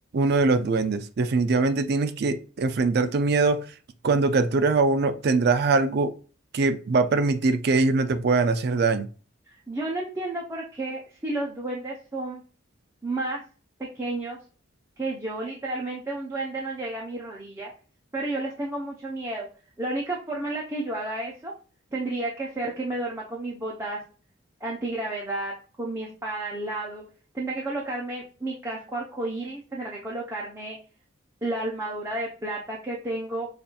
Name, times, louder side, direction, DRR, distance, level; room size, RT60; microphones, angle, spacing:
voice 1, 0.1-3.6 4.0-6.1 6.5-9.1, right 3 dB, 50° right, 0.4 m, -22 dB
voice 2, 9.7-12.4 13.0-13.4 13.9-14.4 15.0-17.7 18.1-19.5 19.8-21.5 21.9-24.0 24.6-27.0 27.3-30.8 31.4-33.5, right 2 dB, 15° right, 0.6 m, -31 dB
5.4 x 2.5 x 2.3 m
head